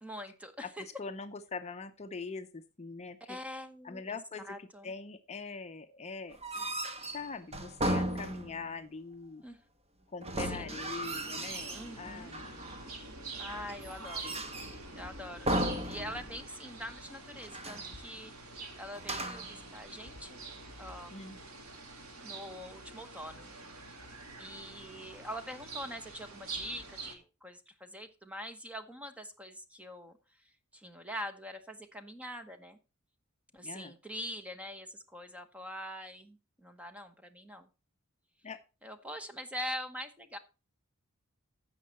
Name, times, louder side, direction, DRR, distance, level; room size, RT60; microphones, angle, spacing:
voice 1, 0.0-0.8 3.3-4.2 4.4-4.9 9.4-9.6 10.5-10.8 11.7-12.3 13.4-14.4 14.9-15.5 15.9-18.3 18.6-20.4 20.8-21.2 22.2-23.5 23.8-24.0 24.4-32.8 33.5-37.7 38.8-40.4, equal, 5° right, 8 dB, 0.9 m, -44 dB
voice 2, 0.6-3.4 3.8-6.4 7.1-9.4 10.1-12.6 14.2-14.3 21.1-21.4 33.6-33.9 38.4-38.6, left 4 dB, 30° left, 8 dB, 0.6 m, -43 dB
sound 1, 6.3-8.8 10.2-11.9 12.3-12.9 13.5-14.9 15.5-16.6 16.8-16.9 17.4-17.9 19.0-19.6, right 1 dB, 30° right, 1.2 m, -36 dB
sound 2, 10.7-27.2, right 3 dB, 90° right, 2.1 m, -46 dB
15.0 x 5.6 x 4.2 m, 0.31 s
head